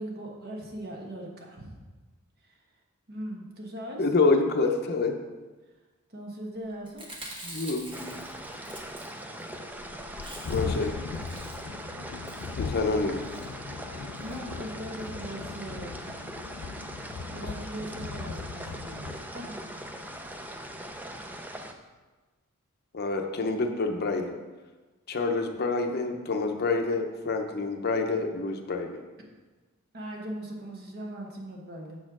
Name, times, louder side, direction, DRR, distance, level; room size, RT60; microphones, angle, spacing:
voice 1, 0.0-1.7 3.1-4.0 6.1-7.0 14.2-16.2 17.3-19.6 29.9-32.0, right 1 dB, 45° right, 0 dB, 1.3 m, -39 dB
voice 2, 4.0-5.2 7.4-8.1 10.5-11.0 12.6-13.2 22.9-24.4 25.1-29.0, left 3 dB, 45° left, 4 dB, 0.7 m, -27 dB
Chewing mastication, 6.9-9.5 9.8-9.9 10.1-10.8 11.1-11.8 12.2-12.6 13.2-13.5 14.2-14.4 14.7-14.8 15.0-15.1, right 1 dB, 25° right, 1.3 m, -45 dB
Thunderstorm, 7.0-7.1 7.5-7.6 7.8-21.5, left 5 dB, 80° left, 0.4 m, -40 dB
sound 1, 7.9-21.7, right 1 dB, 10° right, 0.4 m, -41 dB
7.3 x 4.3 x 6.0 m, 1.3 s
head